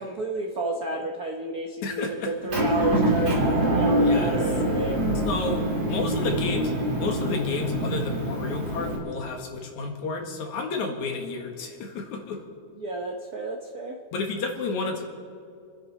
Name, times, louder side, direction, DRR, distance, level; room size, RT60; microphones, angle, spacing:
voice 1, 0.0-5.2 5.8-6.4 12.8-14.0, right 2 dB, 80° right, 2 dB, 0.8 m, -31 dB
voice 2, 1.8-2.3 4.0-4.4 5.2-6.7 7.0-12.4 14.1-15.0, left 3 dB, 75° left, 2 dB, 3.1 m, -31 dB
Motor vehicle (road) / Engine, 2.5-9.0, equal, 40° right, 3.8 m, -25 dB
29.5 x 10.0 x 4.2 m, 2.5 s
omnidirectional pair, 3.4 m